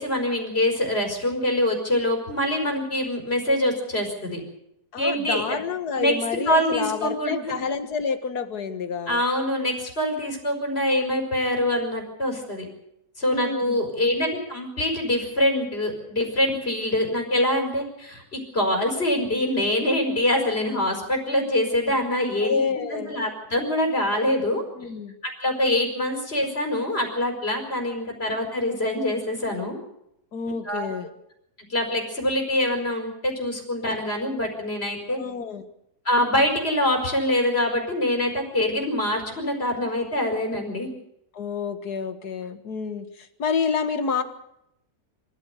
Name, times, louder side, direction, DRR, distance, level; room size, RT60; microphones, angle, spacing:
voice 1, 0.0-4.4 5.0-5.6 6.0-6.1 6.5-7.4 9.1-12.7 13.2-22.6 22.9-24.6 25.4-29.8 30.5-30.9 31.7-35.2 36.1-40.9, left 1 dB, 35° left, 2 dB, 5.3 m, -24 dB
voice 2, 4.9-9.2 13.3-13.8 22.4-23.2 24.8-25.1 30.3-31.1 35.1-35.6 41.3-44.2, left 5 dB, 70° left, 9 dB, 2.1 m, -28 dB
24.5 x 14.5 x 8.2 m, 0.80 s
omnidirectional pair, 1.7 m